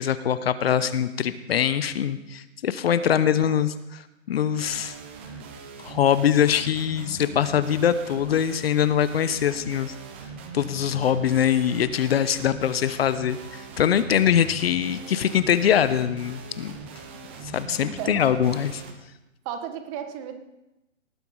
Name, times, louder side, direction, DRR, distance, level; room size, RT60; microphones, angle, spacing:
voice 1, 0.0-5.0 5.8-9.9 10.5-16.8 17.4-18.8, left 9 dB, 50° left, 13 dB, 0.8 m, -23 dB
voice 2, 3.1-3.6 17.8-18.4 19.4-20.4, right 8 dB, 25° right, 8 dB, 1.3 m, -35 dB
sound 1, 4.6-18.9, right 4 dB, 10° right, 0.4 m, -41 dB
18.5 x 8.2 x 5.5 m, 0.95 s
figure-of-eight pair, 130°, 39 cm